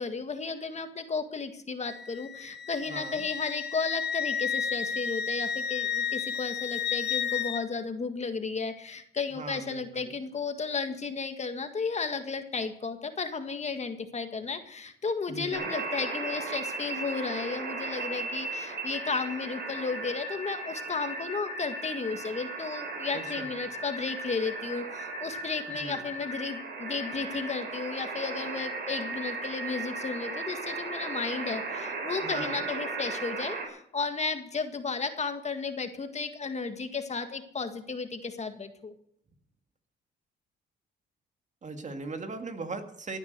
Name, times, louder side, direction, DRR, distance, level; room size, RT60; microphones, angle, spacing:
voice 1, 0.0-38.9, left 4 dB, 35° left, 7 dB, 1.7 m, -34 dB
Wind instrument woodwind instrument, 1.9-7.6, left 7 dB, 55° left, 1.1 m, -32 dB
voice 2, 2.9-3.2 9.3-10.1 15.3-15.7 23.1-23.5 25.8-26.1 32.2-32.6 41.6-43.2, right 3 dB, 35° right, 6 dB, 2.0 m, -39 dB
sound 1, 15.5-33.7, right 3 dB, 55° right, 5.4 m, -36 dB
16.5 x 10.5 x 6.7 m, 0.69 s
cardioid pair, 90°, 20 cm